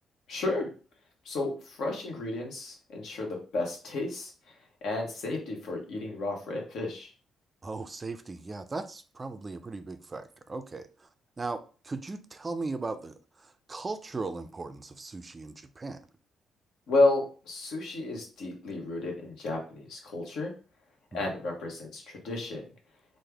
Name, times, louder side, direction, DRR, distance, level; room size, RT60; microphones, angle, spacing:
voice 1, 0.3-0.7 1.2-7.1 16.9-20.5 21.1-22.7, left 2 dB, 75° left, 1.1 m, -32 dB
voice 2, 7.6-11.1 11.4-16.0 21.1-21.2, right 3 dB, 25° right, 0.3 m, -38 dB
3.3 x 2.1 x 3.3 m
cardioid pair, 90°, 0 cm